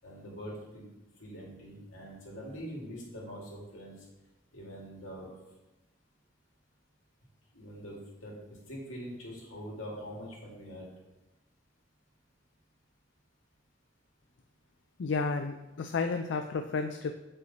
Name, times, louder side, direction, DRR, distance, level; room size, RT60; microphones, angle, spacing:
voice 1, 0.0-0.8 1.2-4.1 4.5-5.3 7.5-10.9, equal, 90° left, -3 dB, 2.4 m, -44 dB
voice 2, 15.0-17.1, left 4 dB, 70° left, 7 dB, 0.4 m, -32 dB
7.8 x 5.5 x 4.1 m, 1.0 s
head